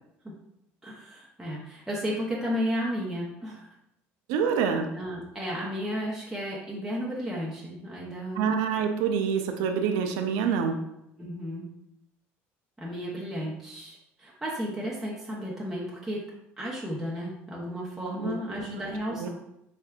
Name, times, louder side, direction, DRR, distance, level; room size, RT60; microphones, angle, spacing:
voice 1, 0.8-3.7 4.9-8.5 11.2-11.7 12.8-16.2 16.6-19.3, equal, 5° right, -6 dB, 0.8 m, -33 dB
voice 2, 4.3-4.9 8.3-10.8 18.2-18.4 19.1-19.3, right 6 dB, 85° right, 6 dB, 0.5 m, -26 dB
4.3 x 3.3 x 2.4 m, 0.81 s
supercardioid pair, 105°, 6 cm